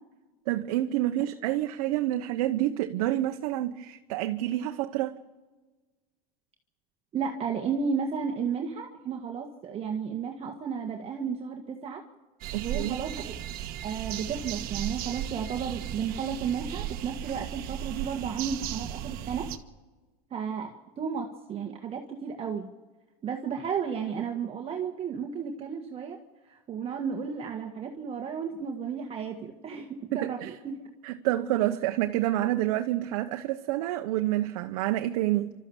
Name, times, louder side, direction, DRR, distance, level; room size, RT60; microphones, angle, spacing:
voice 1, 0.5-5.2 12.5-13.0 30.1-30.5 31.0-35.5, right 14 dB, 80° right, 1.0 m, -28 dB
voice 2, 7.1-12.0 12.6-13.3 13.8-19.5 20.3-22.7 23.2-26.2 26.5-30.4 30.6-30.8, right 6 dB, 30° right, 1.6 m, -33 dB
sound 1, 12.4-19.6, right 11 dB, 55° right, 1.3 m, -36 dB
29.0 x 13.0 x 7.2 m
supercardioid pair, 130°, 18 cm